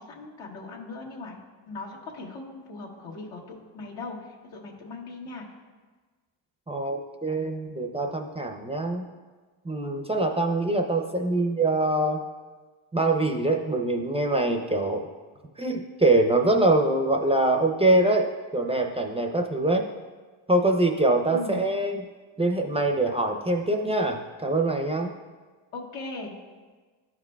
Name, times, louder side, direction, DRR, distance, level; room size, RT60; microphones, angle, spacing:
voice 1, 0.0-1.4 1.7-5.4 21.3-21.6 25.7-26.3, left 3 dB, 75° left, -3 dB, 1.6 m, -39 dB
voice 2, 6.7-9.1 9.6-12.2 12.9-15.0 15.6-19.9 20.5-22.1 22.4-25.1, right 2 dB, 15° right, 2 dB, 0.5 m, -24 dB
12.0 x 4.8 x 2.3 m, 1.4 s
cardioid pair, 85°, 46 cm